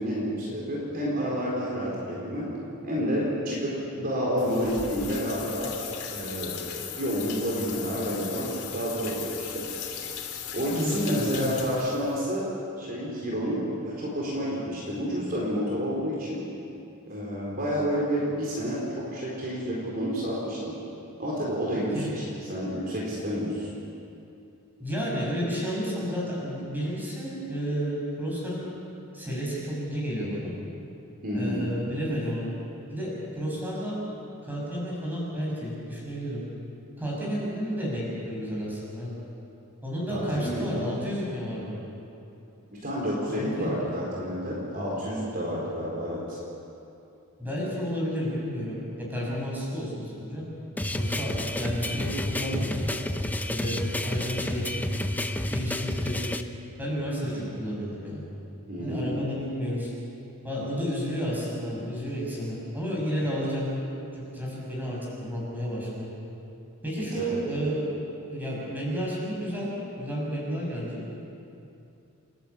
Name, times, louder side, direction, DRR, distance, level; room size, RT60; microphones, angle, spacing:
voice 1, 0.0-2.5 2.8-9.7 10.5-12.5 12.8-16.4 17.1-20.8 21.2-22.2 22.5-23.7 31.2-31.6 40.1-40.6 42.7-46.4 57.3-57.4 58.7-59.2 67.2-67.4, equal, 40° right, -5 dB, 4.4 m, -30 dB
sound 1, 4.4-12.2, left 8 dB, 80° left, 3.3 m, -38 dB
voice 2, 10.7-11.5 21.9-22.1 24.8-28.6 29.1-30.5 31.3-32.5 32.9-34.0 34.4-36.4 37.0-39.1 39.8-41.8 43.3-43.8 47.4-48.8 49.1-50.5 50.9-52.9 53.5-54.9 55.5-56.3 56.8-58.2 58.8-59.9 60.4-63.7 64.1-66.1 66.8-67.9 68.3-69.7 70.0-71.0, equal, 10° right, -5 dB, 7.0 m, -31 dB
sound 2, 50.8-56.4, left 1 dB, 10° left, 0.8 m, -30 dB
29.0 x 12.0 x 8.5 m, 2.7 s
head